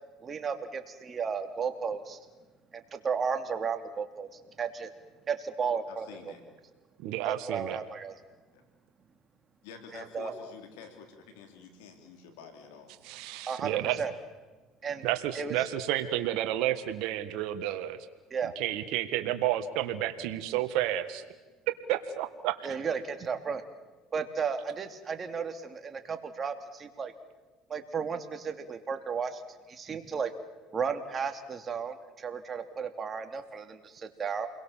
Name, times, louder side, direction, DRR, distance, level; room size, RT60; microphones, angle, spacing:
voice 1, 0.2-2.2 2.7-4.9 5.3-6.1 7.2-8.1 9.9-10.3 13.5-14.1 14.8-15.1 15.3-15.6 18.3-18.5 22.6-23.6 24.1-27.1 27.7-29.4 29.7-30.3 30.7-34.5, right 6 dB, 30° right, 7 dB, 2.7 m, -34 dB
voice 2, 5.9-6.4 8.5-8.6 9.6-13.2, left 6 dB, 85° left, 6 dB, 3.6 m, -49 dB
voice 3, 7.0-7.8 13.0-14.0 15.0-18.0 18.5-21.3 21.9-22.8, right 13 dB, 70° right, 8 dB, 1.6 m, -31 dB
29.0 x 22.0 x 7.4 m, 1.3 s
supercardioid pair, 100°, 0 cm